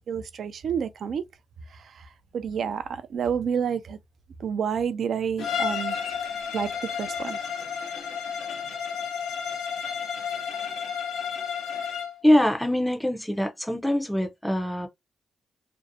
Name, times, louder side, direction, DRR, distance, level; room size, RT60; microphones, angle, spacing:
voice 1, 0.1-1.2 1.7-4.0 4.4-7.4, right 7 dB, 65° right, 0.4 m, -30 dB
Bowed string instrument, 5.4-12.2, left 7 dB, 85° left, 0.6 m, -31 dB
voice 2, 12.2-14.9, left 1 dB, 5° left, 0.5 m, -23 dB
2.6 x 2.0 x 2.6 m
cardioid pair, 85°, 0 cm